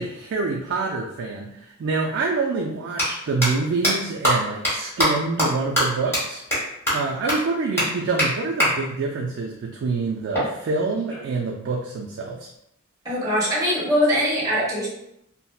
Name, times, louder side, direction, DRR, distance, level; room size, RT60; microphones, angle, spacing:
voice 1, 0.0-6.4 6.9-12.5, right 3 dB, 55° right, -1 dB, 0.3 m, -26 dB
sound 1, 1.7-1.8 2.8-3.0 3.4-3.5 3.8-3.9 4.2-4.3 4.6-4.7 5.0-5.1 5.4-5.5 5.8-5.9 6.1-6.2 6.5-6.6 6.9-7.0 7.3-7.4 7.8-7.9 8.2-8.3 8.6-8.7 10.3-11.4, equal, 10° left, 1.3 m, -22 dB
voice 2, 13.0-14.9, equal, 15° right, -7 dB, 1.1 m, -22 dB
3.9 x 2.0 x 2.2 m, 0.78 s
head